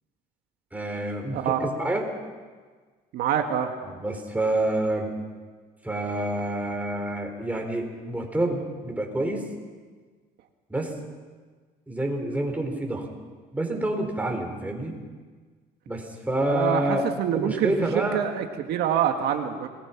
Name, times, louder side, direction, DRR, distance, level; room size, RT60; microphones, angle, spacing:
voice 1, 0.7-2.0 3.8-5.1 5.8-9.5 10.7-10.9 11.9-13.1 13.5-14.9 15.9-17.0 17.3-18.2, right 1 dB, 10° right, 2 dB, 4.2 m, -28 dB
voice 2, 1.3-1.7 3.1-3.7 16.5-19.7, right 9 dB, 75° right, 5 dB, 1.7 m, -26 dB
26.5 x 19.5 x 5.9 m, 1.5 s
cardioid pair, 110°, 17 cm